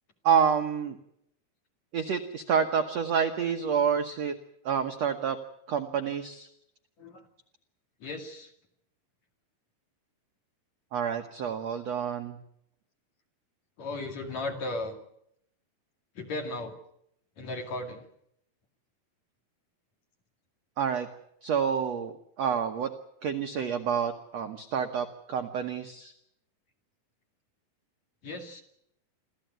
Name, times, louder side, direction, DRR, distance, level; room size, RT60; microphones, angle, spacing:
voice 1, 0.2-1.0 1.9-4.3 4.6-5.4 5.7-6.5 10.9-12.4 20.8-21.1 21.4-22.9 23.2-26.1, right 7 dB, 80° right, 5 dB, 1.5 m, -28 dB
voice 2, 8.0-8.5 13.8-15.0 16.1-16.8 17.4-18.0 28.2-28.6, left 2 dB, 50° left, 4 dB, 3.1 m, -35 dB
27.0 x 15.0 x 9.2 m, 0.76 s
omnidirectional pair, 4.8 m